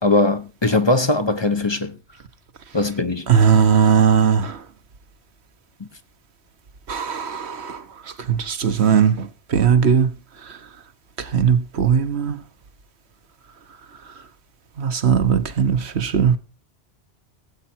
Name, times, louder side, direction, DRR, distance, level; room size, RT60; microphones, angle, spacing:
voice 1, 0.0-2.0 2.7-3.3, left 2 dB, 25° left, 0.8 m, -20 dB
voice 2, 3.3-4.6 6.9-7.8 8.3-10.1 11.2-12.4 14.8-16.4, right 7 dB, 70° right, 1.3 m, -18 dB
17.0 x 8.3 x 4.4 m
omnidirectional pair, 1.2 m